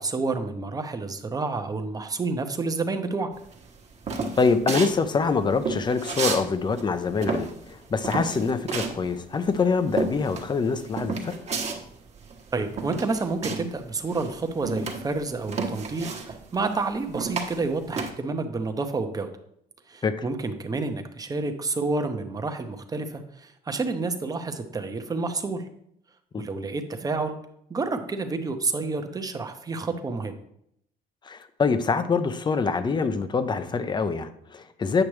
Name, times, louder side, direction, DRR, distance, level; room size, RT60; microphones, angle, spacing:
voice 1, 0.0-3.3 12.5-19.3 19.9-25.7 26.4-27.4 27.7-30.4, right 3 dB, 20° right, 6 dB, 0.8 m, -29 dB
sound 1, 3.5-6.5 6.7-13.8 14.1-18.1, right 4 dB, 40° right, 1.2 m, -31 dB
voice 2, 4.4-11.4 20.0-20.2 26.3-26.4 31.2-35.0, left 4 dB, 25° left, 11 dB, 0.6 m, -25 dB
8.8 x 5.8 x 3.2 m, 0.72 s
cardioid pair, 110°, 17 cm